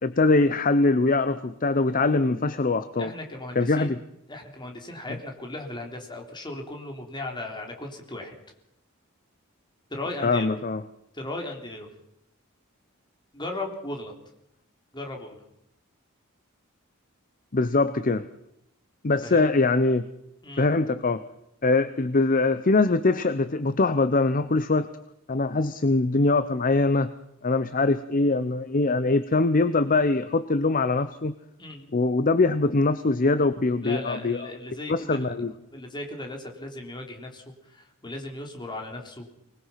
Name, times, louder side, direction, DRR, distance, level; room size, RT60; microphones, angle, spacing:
voice 1, 0.0-3.1 3.6-4.0 10.2-10.8 17.5-18.3 19.0-20.1 20.6-21.2 21.6-24.9 25.3-27.1 27.4-31.3 31.9-34.4 34.9-35.5, left 3 dB, 40° left, 13 dB, 0.8 m, -22 dB
voice 2, 3.0-3.9 4.3-8.4 9.9-10.6 11.1-11.9 13.3-14.1 14.9-15.4 19.2-19.5 20.4-20.6 31.6-32.0 33.8-39.3, left 2 dB, 20° left, 2 dB, 3.6 m, -37 dB
25.0 x 20.0 x 5.8 m, 0.81 s
head